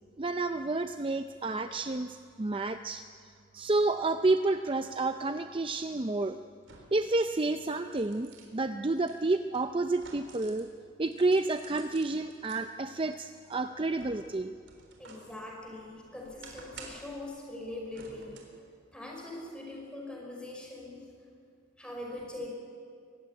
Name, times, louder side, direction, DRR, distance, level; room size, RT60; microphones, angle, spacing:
voice 1, 0.2-3.0 3.5-6.4 6.9-10.7 11.0-14.5, right 2 dB, 25° right, 8 dB, 0.5 m, -30 dB
sound 1, 5.3-5.4 6.6-7.1 7.6-10.7 11.1-12.6 13.1-15.3 15.7-17.2 17.9-18.6 19.0-19.2, right 4 dB, 70° right, 3.9 m, -52 dB
voice 2, 15.0-18.4 18.9-21.1 21.8-22.5, left 1 dB, 5° left, -1 dB, 5.4 m, -42 dB
23.5 x 15.5 x 9.9 m, 2.3 s
head